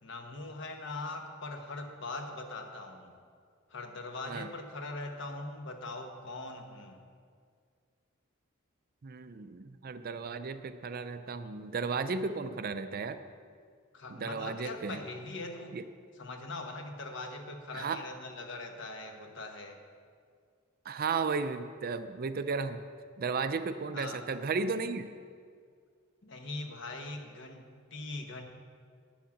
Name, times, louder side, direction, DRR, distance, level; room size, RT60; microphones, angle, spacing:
voice 1, 0.0-3.1 3.7-7.0 13.9-15.8 16.2-19.8 23.9-24.2 26.2-28.4, left 2 dB, 60° left, 4 dB, 1.1 m, -41 dB
voice 2, 9.0-13.2 14.1-15.0 15.7-15.8 17.7-18.0 20.9-22.8 23.2-25.1, right 4 dB, 45° right, 10 dB, 0.5 m, -34 dB
9.1 x 7.2 x 7.2 m, 2.1 s
head